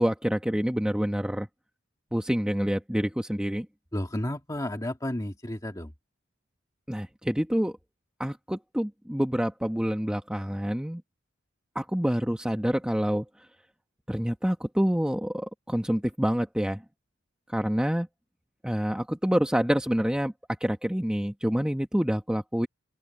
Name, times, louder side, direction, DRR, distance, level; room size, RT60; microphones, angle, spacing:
voice 1, 0.0-1.5 2.1-3.7 6.9-7.8 8.2-11.0 11.7-13.3 14.1-16.8 17.5-18.1 18.6-20.3 20.6-22.7, equal, 5° right, 1.0 m, -27 dB
voice 2, 3.9-5.9, left 1 dB, 20° left, 1.9 m, -32 dB
open air
head